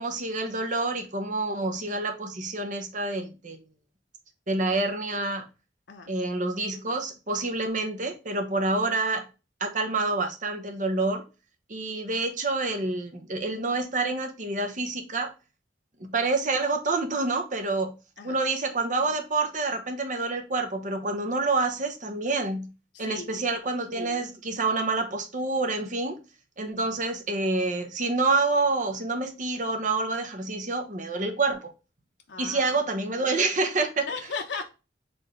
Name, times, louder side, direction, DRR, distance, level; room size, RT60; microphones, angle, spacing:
voice 1, 0.0-3.6 4.5-5.5 6.1-9.3 9.6-11.3 11.7-15.3 16.0-17.9 18.2-22.7 23.0-26.2 26.6-31.7 32.4-34.1, right 3 dB, 45° right, 1.0 m, -27 dB
voice 2, 22.9-23.6 32.3-32.8 34.1-34.7, left 4 dB, 75° left, 0.8 m, -36 dB
4.4 x 3.6 x 3.1 m
head